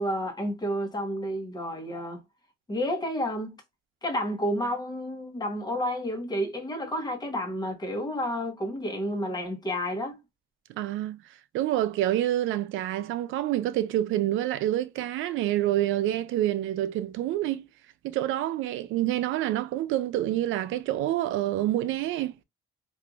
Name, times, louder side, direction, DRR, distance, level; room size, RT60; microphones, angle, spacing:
voice 1, 0.0-2.2 2.7-3.5 4.0-10.2, equal, 20° left, 1.1 m, -30 dB
voice 2, 10.8-11.2 11.5-17.7 18.0-22.3, right 13 dB, 85° right, 0.4 m, -27 dB
3.4 x 2.6 x 2.4 m
cardioid pair, 90°, 20 cm